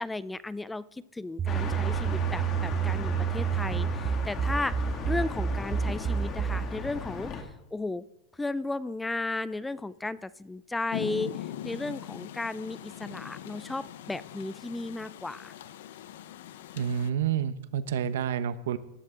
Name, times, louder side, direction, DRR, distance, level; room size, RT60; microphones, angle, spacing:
voice 1, 0.0-7.5 7.7-8.0 8.4-15.5, left 2 dB, 10° left, 18 dB, 0.4 m, -35 dB
sound 1, 1.4-6.7, right 8 dB, 25° right, 1.0 m, -29 dB
sound 2, 1.5-7.4, left 5 dB, 35° left, 2.2 m, -37 dB
Rain, 10.9-17.1, left 11 dB, 75° left, 0.7 m, -41 dB
voice 2, 16.8-18.8, right 8 dB, 80° right, 13 dB, 0.9 m, -29 dB
18.0 x 12.5 x 3.8 m, 0.95 s
supercardioid pair, 130°, 0 cm